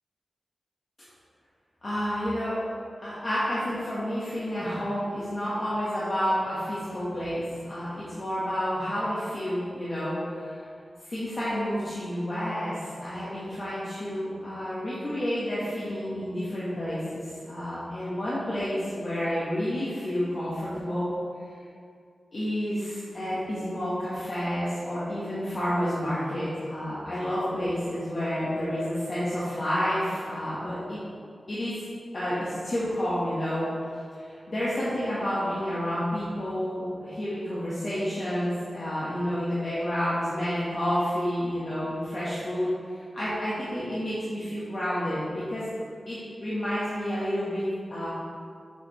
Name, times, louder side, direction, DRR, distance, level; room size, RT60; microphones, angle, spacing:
voice 1, 1.8-2.6 3.0-10.6 11.0-21.1 22.3-31.0 31.5-31.8 32.1-33.7 34.1-45.6 46.1-48.1, equal, 55° left, -11 dB, 1.6 m, -30 dB
6.9 x 5.1 x 3.2 m, 2.3 s
cardioid pair, 45°, 0 cm